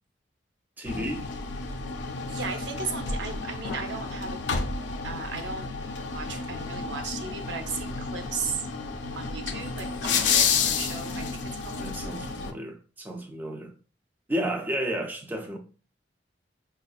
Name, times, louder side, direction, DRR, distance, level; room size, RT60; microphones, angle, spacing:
voice 1, 0.8-1.3 11.8-13.7 14.3-15.6, right 1 dB, 10° right, 0.3 m, -32 dB
sound 1, 0.9-12.5, left 5 dB, 75° left, 0.4 m, -30 dB
voice 2, 2.3-4.4 5.0-5.7 6.0-8.6 9.1-11.8, right 5 dB, 70° right, 0.6 m, -36 dB
5.1 x 2.3 x 2.2 m
head